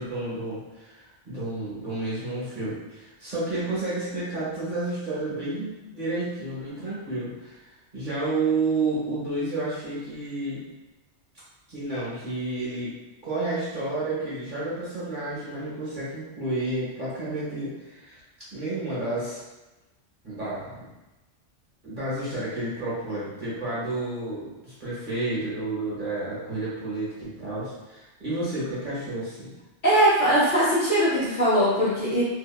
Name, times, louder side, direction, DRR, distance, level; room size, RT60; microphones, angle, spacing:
voice 1, 0.0-7.6 7.9-10.6 11.7-12.9 13.2-18.2 18.5-19.4 20.2-20.8 21.8-29.5, right 2 dB, 45° right, -10 dB, 1.2 m, -31 dB
voice 2, 29.8-32.2, right 1 dB, 45° left, -9 dB, 1.0 m, -21 dB
2.8 x 2.7 x 2.2 m, 1.1 s
omnidirectional pair, 1.2 m